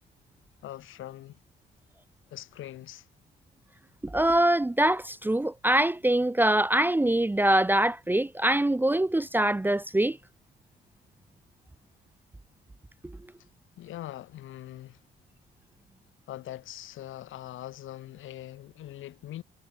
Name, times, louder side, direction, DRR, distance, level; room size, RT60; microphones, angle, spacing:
voice 1, 0.6-1.4 2.3-3.1 13.8-15.0 16.3-19.4, left 13 dB, 80° left, 7.2 m, -42 dB
voice 2, 4.0-10.2, right 1 dB, 10° right, 0.7 m, -24 dB
cardioid pair, 90°, 20 cm